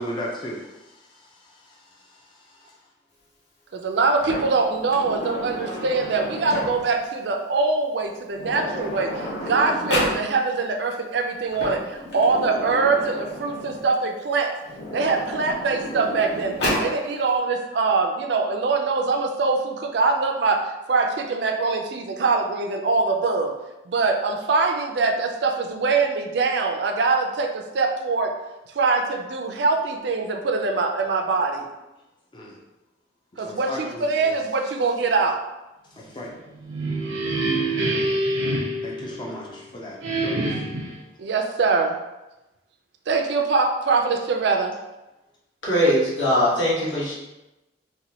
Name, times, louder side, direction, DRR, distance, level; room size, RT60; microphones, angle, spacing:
voice 1, 0.0-2.7 32.3-32.6 33.3-34.4 36.0-36.3 38.8-40.0, equal, 25° left, -3 dB, 0.4 m, -36 dB
voice 2, 3.7-14.5 14.9-16.5 16.8-20.6 20.9-23.5 23.9-28.3 28.7-31.7 33.4-35.4 41.2-42.0 43.1-44.7, right 4 dB, 60° right, 3 dB, 0.4 m, -23 dB
Sliding door, 4.1-7.0 8.0-8.1 8.3-10.2 11.3-13.8 14.6-16.9, left 1 dB, 60° left, 0.9 m, -31 dB
sound 1, 36.5-39.6 40.0-41.0, right 1 dB, 90° right, 0.7 m, -26 dB
voice 3, 45.6-47.1, equal, 85° left, -7 dB, 1.2 m, -21 dB
4.1 x 2.2 x 2.8 m, 1.0 s
head